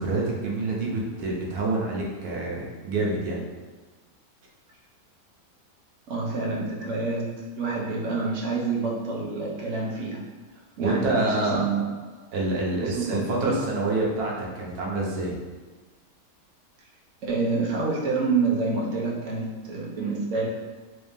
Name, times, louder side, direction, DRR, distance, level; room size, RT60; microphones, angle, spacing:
voice 1, 0.0-3.5 10.8-11.6 12.3-15.4, right 2 dB, 85° right, -3 dB, 1.3 m, -27 dB
voice 2, 6.1-10.2 10.8-11.9 12.8-13.6 17.2-20.5, right 3 dB, 60° right, -3 dB, 1.0 m, -27 dB
3.8 x 2.7 x 3.4 m, 1.3 s
omnidirectional pair, 1.6 m